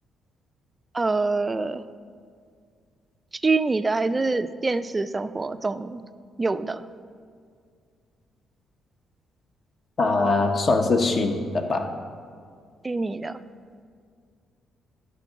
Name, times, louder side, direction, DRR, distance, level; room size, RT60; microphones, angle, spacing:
voice 1, 0.9-1.8 3.3-6.0 6.4-6.9 12.8-13.4, right 3 dB, 25° right, 13 dB, 0.3 m, -25 dB
voice 2, 10.0-11.9, left 3 dB, 45° left, 5 dB, 0.9 m, -22 dB
11.5 x 3.8 x 6.2 m, 2.1 s
cardioid pair, 90°, 0 cm